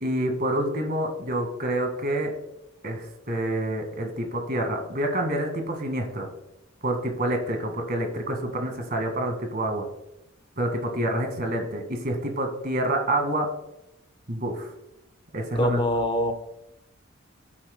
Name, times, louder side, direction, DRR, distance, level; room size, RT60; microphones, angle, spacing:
voice 1, 0.0-2.3 2.8-6.3 6.8-9.9 10.6-13.5 14.3-14.7 15.3-15.8, right 1 dB, 45° right, 4 dB, 1.9 m, -27 dB
voice 2, 15.6-16.3, equal, 25° left, 6 dB, 0.9 m, -24 dB
15.5 x 9.0 x 2.2 m, 0.89 s
head